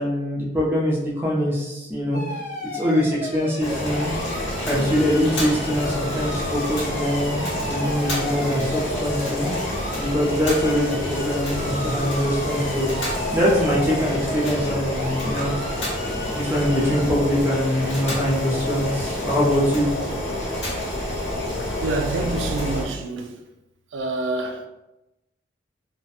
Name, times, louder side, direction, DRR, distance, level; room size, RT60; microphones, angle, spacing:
voice 1, 0.0-2.2 2.7-4.1 4.6-9.5 9.9-15.6 16.2-19.9, equal, 10° right, 0.4 m, -23 dB
sound 1, 2.1-17.0, equal, 40° left, 0.6 m, -35 dB
Boiling, 3.6-22.8, left 1 dB, 80° left, 1.0 m, -28 dB
voice 2, 21.8-23.4 23.9-24.7, right 2 dB, 90° right, 0.4 m, -27 dB
2.7 x 2.0 x 2.3 m
head